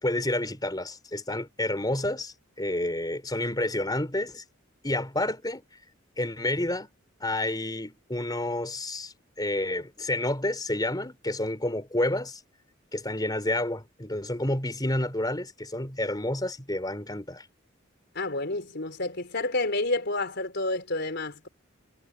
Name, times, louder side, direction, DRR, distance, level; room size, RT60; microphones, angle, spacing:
voice 1, 0.0-4.4 4.8-5.6 6.2-6.9 7.2-12.4 12.9-17.4, left 1 dB, 20° left, 4.0 m, -29 dB
voice 2, 18.1-21.5, left 2 dB, 55° left, 4.3 m, -29 dB
head